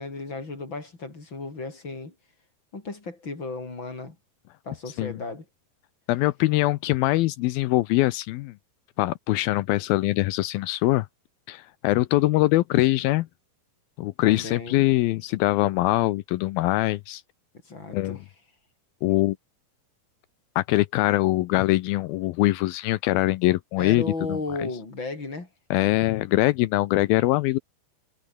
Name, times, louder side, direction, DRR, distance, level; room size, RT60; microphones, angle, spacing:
voice 1, 0.0-2.1 2.7-4.2 4.6-5.5 14.2-14.8 17.6-18.2 23.8-25.5, left 3 dB, 25° left, 5.2 m, -34 dB
voice 2, 6.1-8.5 9.0-11.1 11.5-13.3 14.0-17.2 17.9-18.2 19.0-19.4 20.6-24.4 25.7-27.6, left 18 dB, 85° left, 2.2 m, -23 dB
omnidirectional pair, 4.8 m